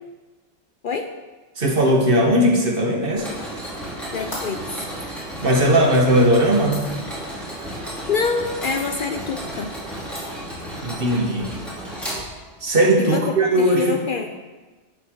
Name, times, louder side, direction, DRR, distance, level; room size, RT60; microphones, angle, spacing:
voice 1, 1.6-3.3 5.4-6.9 10.8-11.5 12.6-14.0, right 1 dB, 50° right, 1 dB, 1.6 m, -18 dB
Mechanisms, 3.2-12.7, right 1 dB, ahead, 2.9 m, -33 dB
voice 2, 4.1-4.6 8.1-9.7 13.0-13.2 13.6-14.3, left 5 dB, 55° left, 5 dB, 0.7 m, -25 dB
sound 1, 4.3-7.0 8.0-8.3 8.6-8.9 9.4-9.5 10.1-11.1, left 1 dB, 75° left, 2.6 m, -38 dB
11.0 x 7.8 x 3.8 m, 1.3 s
omnidirectional pair, 1.2 m